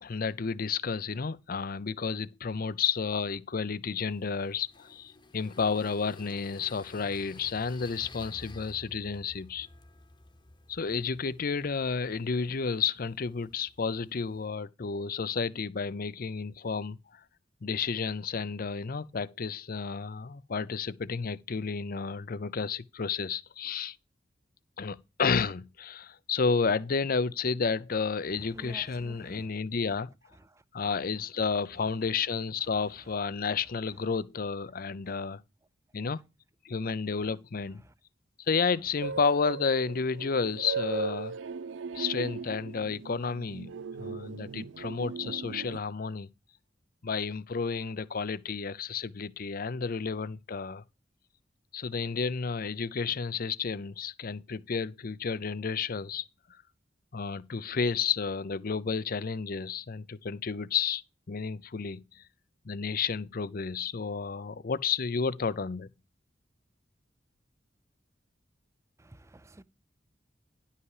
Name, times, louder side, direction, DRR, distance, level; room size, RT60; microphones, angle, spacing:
voice 1, 0.0-9.7 10.7-17.2 17.6-24.0 24.8-30.1 30.7-35.4 35.9-36.2 36.6-37.8 38.4-41.3 41.9-43.7 44.0-46.3 47.0-50.8 51.7-56.2 57.1-61.0 61.3-62.2 62.6-65.9, left 5 dB, 50° left, 0.6 m, -31 dB
sound 1, 4.0-14.5, left 2 dB, 25° left, 1.1 m, -53 dB
voice 2, 28.3-29.5 29.9-30.0 30.3-30.9 32.6-32.8 33.9-34.0 37.1-37.4 37.6-37.9 69.0-69.6, right 2 dB, 15° right, 0.5 m, -52 dB
sound 2, 39.0-45.8, right 5 dB, 85° right, 0.4 m, -37 dB
11.0 x 5.6 x 4.8 m
head